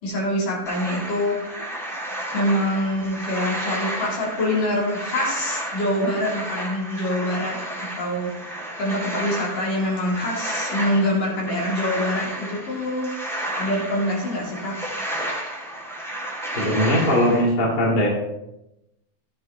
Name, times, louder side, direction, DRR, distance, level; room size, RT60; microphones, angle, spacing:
voice 1, 0.0-1.4 2.3-13.1 13.6-14.8, left 1 dB, 60° left, -4 dB, 4.8 m, -25 dB
sound 1, 0.6-17.4, right 1 dB, ahead, 2.2 m, -32 dB
voice 2, 16.5-18.1, equal, 30° left, -3 dB, 2.6 m, -20 dB
15.5 x 10.5 x 2.2 m, 0.89 s
omnidirectional pair, 4.2 m